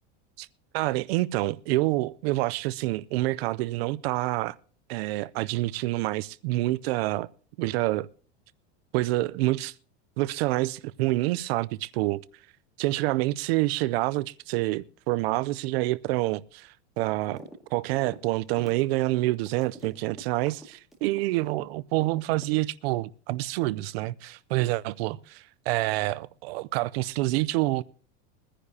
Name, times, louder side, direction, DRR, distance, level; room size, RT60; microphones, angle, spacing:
voice 1, 0.7-4.6 4.9-7.3 7.6-8.1 8.9-9.7 10.2-12.2 12.8-17.4 17.7-27.8, right 19 dB, 60° right, 0.5 m, -27 dB
sound 1, 17.3-17.6 17.8-21.7 22.0-22.9, right 1 dB, ahead, 2.0 m, -46 dB
22.5 x 10.0 x 2.8 m
supercardioid pair, 160°, 35 cm